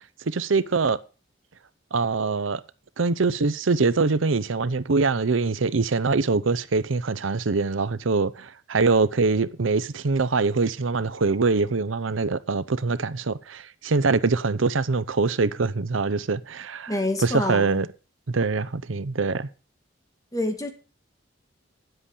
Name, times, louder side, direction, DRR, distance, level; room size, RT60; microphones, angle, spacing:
voice 1, 0.3-1.0 1.9-2.6 3.0-16.9 17.2-17.9 18.3-19.5, right 4 dB, 85° right, 0.7 m, -23 dB
voice 2, 16.9-17.8 20.3-20.7, left 1 dB, 20° left, 2.2 m, -27 dB
10.0 x 7.9 x 7.1 m
head